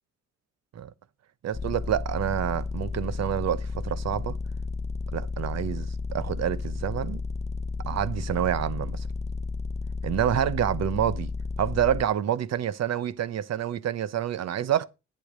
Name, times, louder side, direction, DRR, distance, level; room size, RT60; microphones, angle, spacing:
voice 1, 1.4-4.4 5.1-5.9 6.1-7.2 7.9-9.0 10.0-11.3 11.6-14.8, right 10 dB, 60° right, 0.9 m, -27 dB
sound 1, 1.5-12.0, left 4 dB, 20° left, 0.8 m, -32 dB
10.5 x 8.6 x 5.1 m
cardioid pair, 90°, 30 cm